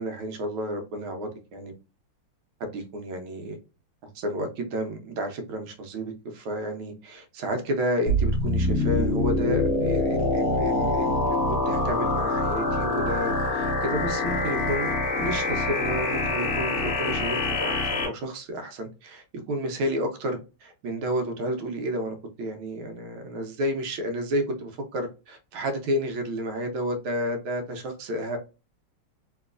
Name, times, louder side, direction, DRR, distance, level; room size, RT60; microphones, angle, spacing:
voice 1, 0.0-1.7 2.6-3.6 4.0-11.4 11.7-14.9 15.2-28.4, equal, 80° right, 1.5 m, -31 dB
sound 1, 8.1-18.1, left 2 dB, 60° left, 0.6 m, -25 dB
3.3 x 3.0 x 2.4 m
omnidirectional pair, 2.3 m